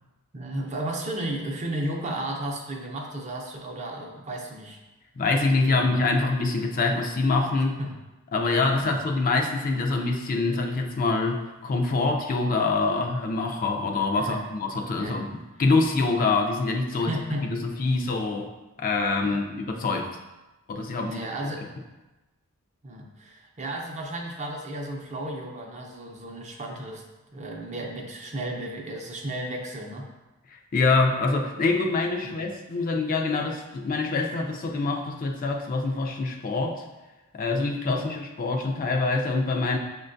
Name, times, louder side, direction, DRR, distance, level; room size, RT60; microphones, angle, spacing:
voice 1, 0.3-4.8 5.6-5.9 7.8-7.9 8.8-8.9 14.2-14.5 15.0-15.2 16.9-17.5 19.2-19.4 21.1-21.7 22.8-27.0 27.3-30.1 32.2-32.3 37.9-38.1, right 1 dB, 30° right, 1 dB, 0.5 m, -34 dB
voice 2, 5.2-7.8 8.3-15.3 15.6-17.1 17.8-18.5 18.8-20.1 20.7-21.3 30.5-36.8 37.3-39.8, left 3 dB, 40° left, 2 dB, 0.3 m, -25 dB
6.1 x 2.2 x 2.5 m, 1.1 s
head